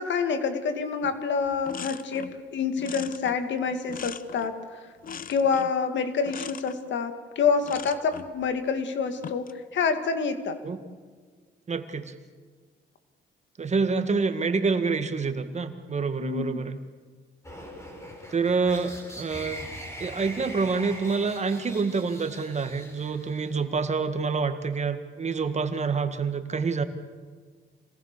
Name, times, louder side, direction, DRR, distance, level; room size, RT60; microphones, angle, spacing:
voice 1, 0.0-4.8 5.3-10.6 16.2-16.6, left 5 dB, 70° left, 9 dB, 2.2 m, -27 dB
sound 1, 1.0-1.2 1.5-2.4 2.8-4.6 5.0-5.8 6.3-6.8 7.6-8.3 9.1-9.6, left 7 dB, 45° left, 0.9 m, -40 dB
voice 2, 11.7-12.1 13.6-16.8 18.3-19.7 20.0-26.8, right 4 dB, 35° right, 9 dB, 1.9 m, -27 dB
sound 2, 17.4-23.6, equal, 15° left, 5.8 m, -42 dB
26.5 x 18.5 x 6.8 m, 1.5 s
cardioid pair, 90°, 20 cm